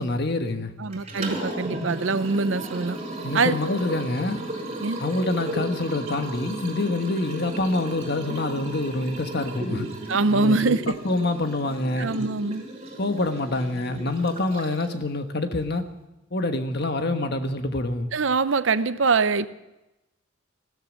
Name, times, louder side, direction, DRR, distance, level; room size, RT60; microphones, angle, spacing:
voice 1, 0.0-0.7 3.2-4.4 5.0-9.9 10.3-10.8 11.0-12.1 13.0-15.8 16.3-18.1, left 2 dB, 55° left, 7 dB, 1.3 m, -26 dB
voice 2, 0.8-3.0 3.3-3.5 4.8-5.0 10.1-11.0 12.0-12.6 18.1-19.5, right 4 dB, 70° right, 14 dB, 0.7 m, -23 dB
Liquid, 0.9-15.0, right 1 dB, 30° right, 6.0 m, -34 dB
16.0 x 13.5 x 6.5 m, 0.97 s
head